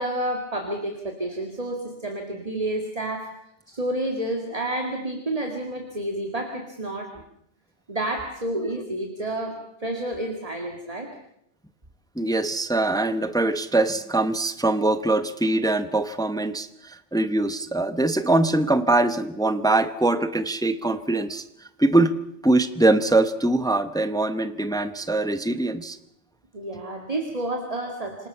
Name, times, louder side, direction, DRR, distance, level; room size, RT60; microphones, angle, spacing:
voice 1, 0.0-3.3 3.7-7.2 7.9-11.1 26.5-28.3, right 1 dB, 30° right, 3 dB, 2.2 m, -30 dB
voice 2, 12.2-21.4 21.8-22.1 22.4-26.0, right 2 dB, 5° left, 12 dB, 0.7 m, -22 dB
27.0 x 19.0 x 5.6 m, 0.77 s
omnidirectional pair, 1.2 m